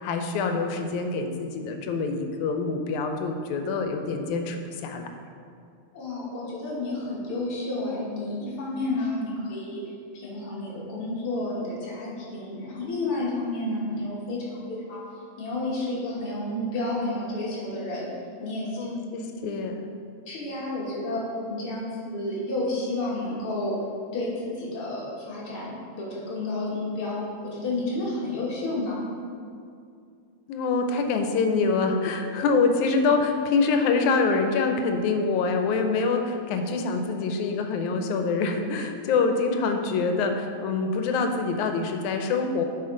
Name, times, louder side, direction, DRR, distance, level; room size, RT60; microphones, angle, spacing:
voice 1, 0.0-5.1 18.8-19.8 30.5-42.6, left 4 dB, 90° left, 5 dB, 2.1 m, -25 dB
voice 2, 5.9-9.9 10.1-15.0 15.4-18.1 18.4-18.9 20.3-23.8 24.1-27.2 27.4-29.0, left 2 dB, 55° left, -5 dB, 2.1 m, -31 dB
8.6 x 5.6 x 3.8 m, 2.3 s
omnidirectional pair, 3.3 m